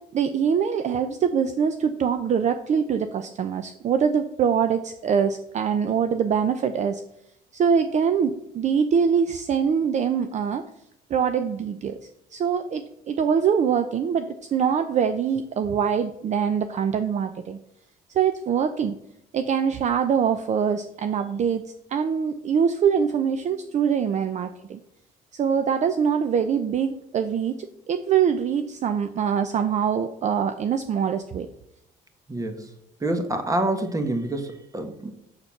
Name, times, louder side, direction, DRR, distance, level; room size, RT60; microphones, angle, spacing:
voice 1, 0.1-7.0 7.5-10.6 11.1-17.6 18.1-19.0 19.3-24.8 25.3-31.5, right 7 dB, 45° right, 9 dB, 0.6 m, -24 dB
voice 2, 32.3-32.7 33.0-35.2, right 1 dB, 20° right, 7 dB, 1.4 m, -27 dB
6.9 x 6.9 x 5.8 m, 0.79 s
cardioid pair, 110°, 17 cm